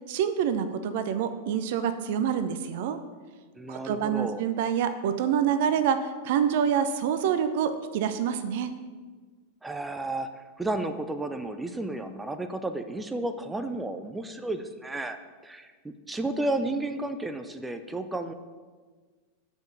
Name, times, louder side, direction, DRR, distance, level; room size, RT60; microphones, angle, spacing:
voice 1, 0.1-3.0 3.7-8.7, right 8 dB, 50° right, 10 dB, 0.6 m, -27 dB
voice 2, 3.6-4.4 9.6-18.3, right 2 dB, 10° right, 8 dB, 0.5 m, -32 dB
7.1 x 5.3 x 7.0 m, 1.4 s
figure-of-eight pair, 90°, 0 cm